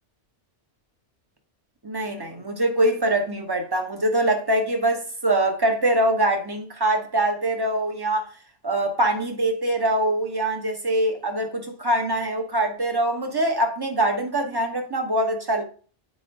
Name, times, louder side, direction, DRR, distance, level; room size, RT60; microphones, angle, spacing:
voice 1, 1.8-8.3 8.6-15.6, right 1 dB, 20° right, 0.9 m, -23 dB
8.2 x 4.6 x 2.6 m
omnidirectional pair, 1.2 m